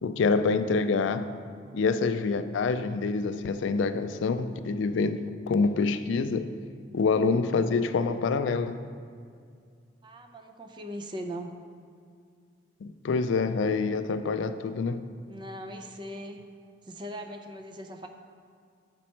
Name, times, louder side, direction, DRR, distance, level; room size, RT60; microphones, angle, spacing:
voice 1, 0.0-1.3 1.7-6.5 6.9-8.8 12.8-15.0, left 4 dB, 75° left, 11 dB, 0.4 m, -26 dB
voice 2, 10.0-11.5 15.3-16.4 16.8-18.1, equal, 25° right, 5 dB, 0.4 m, -39 dB
7.2 x 5.3 x 4.4 m, 2.2 s
head